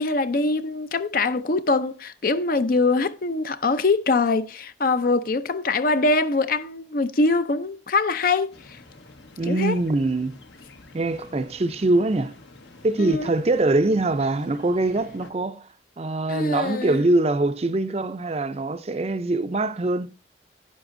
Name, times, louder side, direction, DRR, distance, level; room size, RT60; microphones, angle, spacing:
voice 1, 0.0-8.8 9.4-9.8 13.0-13.3 16.3-17.0, left 3 dB, 50° left, 0.5 m, -23 dB
sound 1, 8.5-15.3, left 2 dB, 75° left, 1.2 m, -48 dB
voice 2, 9.4-10.4 10.9-12.3 12.8-15.7 16.0-20.1, right 2 dB, 35° right, 0.5 m, -23 dB
11.0 x 10.0 x 2.6 m
head